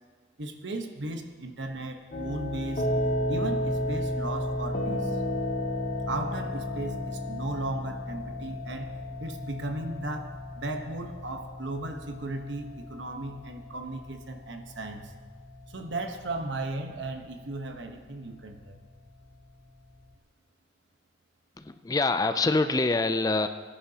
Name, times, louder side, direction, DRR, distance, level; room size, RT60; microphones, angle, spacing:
voice 1, 0.4-2.9 3.3-5.2 6.1-8.9 9.2-15.1 15.7-18.8, right 2 dB, 85° right, 5 dB, 1.1 m, -36 dB
sound 1, 2.1-20.1, left 1 dB, 45° left, 0.9 m, -34 dB
voice 2, 21.6-23.5, left 3 dB, 20° left, 10 dB, 0.4 m, -25 dB
20.5 x 10.5 x 2.9 m, 1.5 s
head